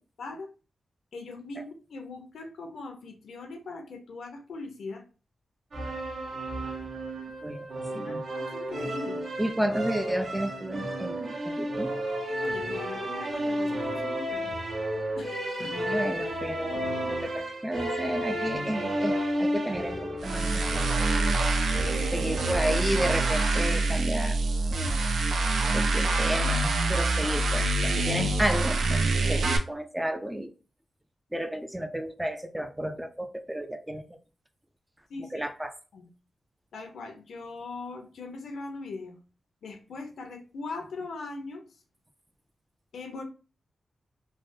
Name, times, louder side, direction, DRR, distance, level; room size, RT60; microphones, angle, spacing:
voice 1, 0.2-0.5 1.1-5.0 7.9-9.2 12.4-14.5 15.1-15.8 21.8-22.3 35.1-35.4 35.9-36.1 36.7-39.2 39.6-41.6 42.9-43.2, left 3 dB, 90° left, 4 dB, 0.6 m, -40 dB
sound 1, 5.7-23.4, right 1 dB, 65° right, 0.9 m, -32 dB
voice 2, 9.4-11.9 15.6-20.9 22.1-24.4 24.7-25.0 25.7-30.5 31.3-34.2 35.3-35.7, equal, 10° right, 8 dB, 0.3 m, -32 dB
sound 2, 20.2-29.6, right 2 dB, 85° right, 0.4 m, -26 dB
3.2 x 2.0 x 2.6 m, 0.35 s
wide cardioid pair, 110°, 0 cm